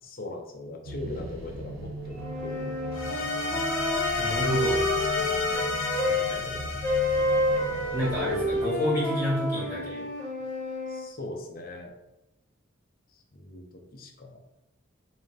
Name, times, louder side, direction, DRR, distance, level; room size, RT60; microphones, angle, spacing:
voice 1, 0.0-3.3 5.3-6.8 7.4-7.5 9.7-10.1 10.9-11.9 13.1-14.4, left 2 dB, 45° left, 2 dB, 0.6 m, -41 dB
sound 1, 0.8-8.7, right 1 dB, 90° right, 0.7 m, -39 dB
sound 2, 2.2-6.3 6.8-11.0, left 1 dB, 40° right, 1.2 m, -29 dB
sound 3, 2.9-8.3, left 3 dB, 85° left, 0.8 m, -31 dB
voice 2, 4.2-4.8 7.9-10.0, left 1 dB, 10° right, -8 dB, 1.5 m, -29 dB
3.9 x 2.7 x 3.3 m, 0.92 s
head